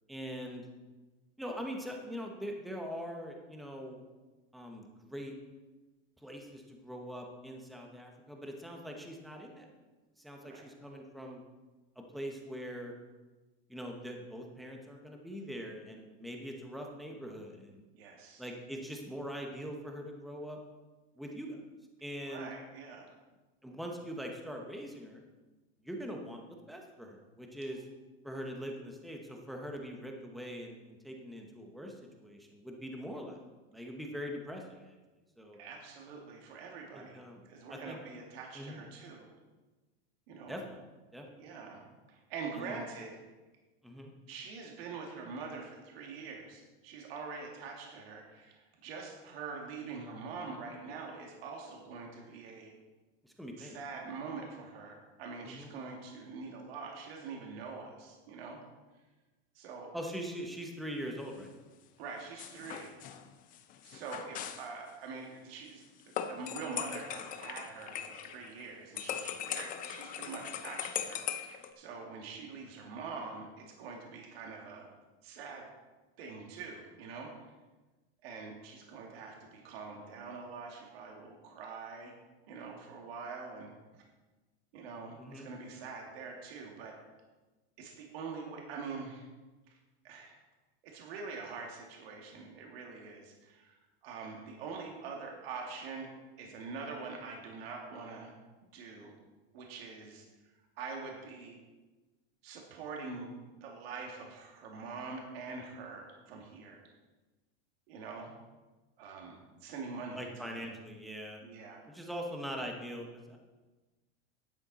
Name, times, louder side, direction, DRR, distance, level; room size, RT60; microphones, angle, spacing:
voice 1, 0.1-0.6 1.4-4.0 4.5-5.3 6.2-9.7 10.2-11.4 12.0-12.9 13.7-17.8 18.4-20.6 21.2-21.6 22.0-22.5 23.6-25.2 25.8-27.8 28.2-33.4 33.7-34.9 35.4-35.6 36.9-37.4 37.7-38.0 38.5-38.8 40.5-40.8 41.1-41.3 42.5-42.7 43.8-44.1 53.2-53.7 55.4-55.7 59.9-61.5 85.2-85.5 110.2-111.4 111.9-113.4, equal, ahead, 1 dB, 0.9 m, -42 dB
voice 2, 17.9-18.4 22.2-23.1 35.5-39.3 40.3-40.6 41.4-43.2 44.3-52.7 53.6-58.6 59.5-59.9 62.0-62.9 63.8-74.9 75.2-75.7 76.2-77.3 78.2-82.1 82.5-84.0 84.7-87.0 87.8-89.3 89.7-89.8 90.0-90.4 90.8-96.1 96.4-98.3 98.7-99.1 99.5-100.3 100.8-101.6 102.4-103.3 103.6-106.9 107.9-108.3 109.0-110.7 111.4-111.8, right 4 dB, 65° right, 0 dB, 2.3 m, -44 dB
sound 1, 62.4-64.7 66.1-68.7 69.0-71.7, left 9 dB, 25° left, 0.7 m, -40 dB
12.0 x 8.8 x 4.2 m, 1.2 s
supercardioid pair, 155°, 32 cm